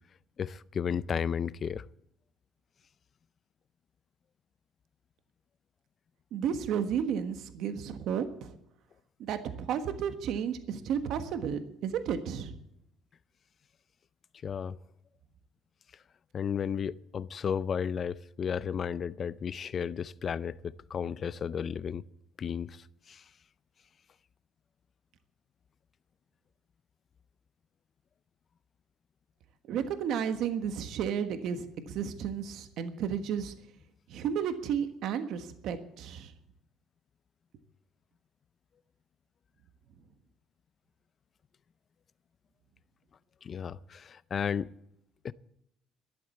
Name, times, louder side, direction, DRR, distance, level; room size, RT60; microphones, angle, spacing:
voice 1, 0.4-1.9 14.4-14.8 16.3-22.0 22.4-23.2 43.4-44.7 45.2-45.3, left 7 dB, 35° left, 0.5 m, -33 dB
voice 2, 6.3-8.6 9.2-12.5 29.7-33.5 34.1-36.3, right 8 dB, 65° right, 1.4 m, -32 dB
13.0 x 11.0 x 8.3 m
cardioid pair, 145°, 0 cm